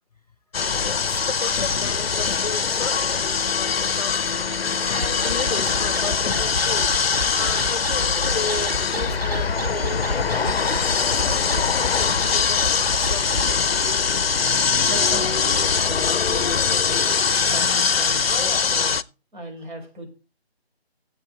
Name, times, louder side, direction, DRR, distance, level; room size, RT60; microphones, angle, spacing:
sound 1, 0.5-19.0, left 6 dB, 65° left, 0.6 m, -22 dB
voice 1, 0.8-11.5 11.7-13.6, left 3 dB, 35° left, 0.8 m, -34 dB
sound 2, 4.9-13.5, equal, 20° right, 1.7 m, -30 dB
voice 2, 14.9-17.1 17.5-19.0 19.3-20.1, right 1 dB, 45° right, 6.2 m, -36 dB
14.0 x 8.7 x 4.2 m
figure-of-eight pair, 160°, 32 cm